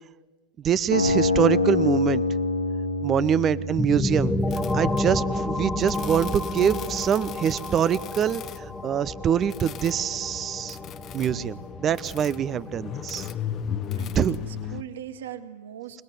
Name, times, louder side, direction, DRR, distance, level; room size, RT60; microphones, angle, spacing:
voice 1, 0.6-2.2 3.0-4.3 4.7-10.8 11.1-13.3 14.1-14.4, right 8 dB, 25° right, 18 dB, 0.8 m, -24 dB
sound 1, 0.9-6.9, left 3 dB, 90° left, 2.9 m, -27 dB
sound 2, 3.8-13.3, left 1 dB, 5° left, 1.4 m, -31 dB
sound 3, 4.2-14.8, left 8 dB, 30° left, 1.2 m, -36 dB
voice 2, 14.0-16.0, right 10 dB, 60° right, 10 dB, 2.1 m, -40 dB
27.5 x 20.0 x 9.5 m, 1.2 s
figure-of-eight pair, 90°, 0 cm